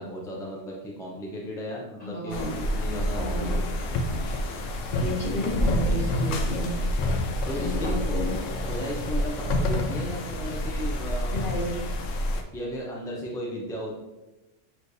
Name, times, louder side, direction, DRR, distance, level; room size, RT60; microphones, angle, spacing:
voice 1, 0.0-3.8 7.5-8.1 8.7-11.6 12.5-14.0, equal, 5° left, -3 dB, 0.3 m, -35 dB
voice 2, 2.0-2.5 3.1-3.5 4.1-4.4 5.0-6.7 7.5-8.3 11.3-11.6, left 1 dB, 35° left, -6 dB, 1.6 m, -31 dB
sound 1, 2.3-12.4, left 1 dB, 80° left, 1.0 m, -28 dB
sound 2, 5.5-8.5, equal, 40° right, 0.7 m, -35 dB
6.4 x 3.1 x 2.6 m, 1.1 s
omnidirectional pair, 1.3 m